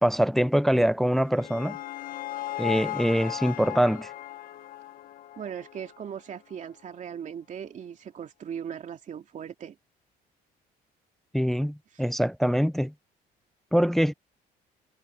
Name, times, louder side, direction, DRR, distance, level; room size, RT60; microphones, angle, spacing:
voice 1, 0.0-1.8 2.6-4.1 11.3-12.9 13.7-14.1, equal, ahead, 0.4 m, -24 dB
sound 1, 1.0-6.2, left 14 dB, 60° left, 1.2 m, -37 dB
voice 2, 5.4-9.8 11.9-12.0, right 8 dB, 45° right, 2.8 m, -38 dB
cardioid pair, 110°, 17 cm